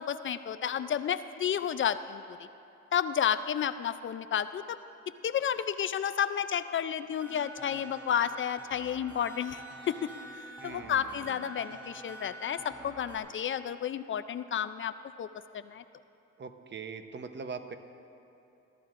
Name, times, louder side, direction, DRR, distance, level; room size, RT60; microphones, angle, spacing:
voice 1, 0.0-2.4 2.9-4.8 5.2-10.1 10.6-15.3 15.5-15.8, left 8 dB, 40° left, 13 dB, 0.4 m, -31 dB
sound 1, 7.2-13.2, right 1 dB, 5° right, 3.2 m, -47 dB
voice 2, 10.6-11.4 16.4-17.8, right 5 dB, 35° right, 8 dB, 0.9 m, -42 dB
21.0 x 12.5 x 2.5 m, 2.9 s
cardioid pair, 90°, 30 cm